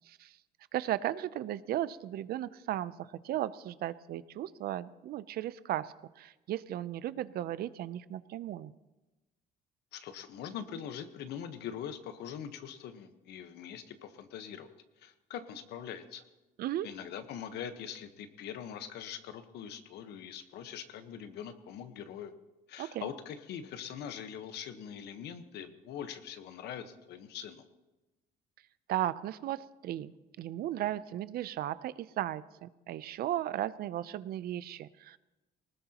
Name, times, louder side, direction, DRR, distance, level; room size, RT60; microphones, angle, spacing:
voice 1, 0.7-8.7 16.6-16.9 22.8-23.1 28.9-30.1 30.4-35.2, right 13 dB, 65° right, 16 dB, 0.6 m, -36 dB
voice 2, 9.9-14.7 15.0-16.2 16.8-22.3 22.7-27.6, left 8 dB, 75° left, 9 dB, 1.3 m, -43 dB
19.5 x 19.5 x 3.0 m, 1.1 s
cardioid pair, 110°, 17 cm